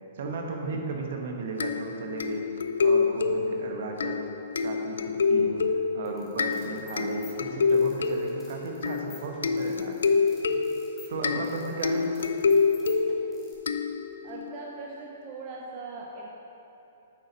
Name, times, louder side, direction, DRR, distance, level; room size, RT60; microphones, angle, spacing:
voice 1, 0.2-2.4 2.8-4.3 4.6-5.6 5.9-10.2 11.1-12.1, right 3 dB, 55° right, 3 dB, 1.0 m, -35 dB
sound 1, 1.6-14.4, left 5 dB, 70° left, 0.4 m, -27 dB
sound 2, 6.1-13.6, left 4 dB, 15° left, 2.0 m, -52 dB
voice 2, 11.9-12.3 14.2-16.3, right 3 dB, 40° right, -1 dB, 0.8 m, -41 dB
8.8 x 6.6 x 4.0 m, 2.9 s
figure-of-eight pair, 115°, 0 cm